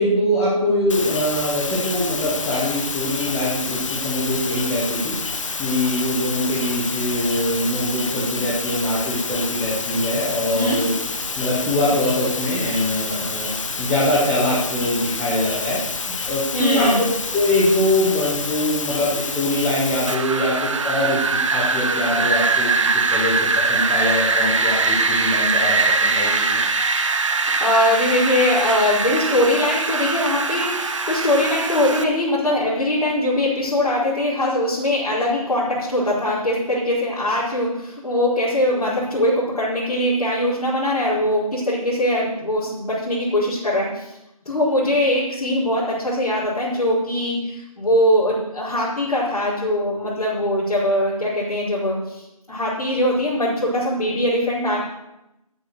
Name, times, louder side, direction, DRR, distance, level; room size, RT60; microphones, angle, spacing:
voice 1, 0.0-5.2 5.6-10.9 11.3-13.5 13.8-16.9 17.3-26.6, left 1 dB, 5° left, -7 dB, 0.9 m, -23 dB
sound 1, 0.9-20.1, left 4 dB, 55° left, 1.2 m, -28 dB
voice 2, 16.5-17.0 27.6-44.1 44.4-54.8, left 1 dB, 85° left, -8 dB, 5.1 m, -21 dB
Wind, 20.1-32.0, right 4 dB, 55° right, 1.3 m, -21 dB
10.0 x 8.5 x 6.5 m, 0.91 s
figure-of-eight pair, 170°, 19 cm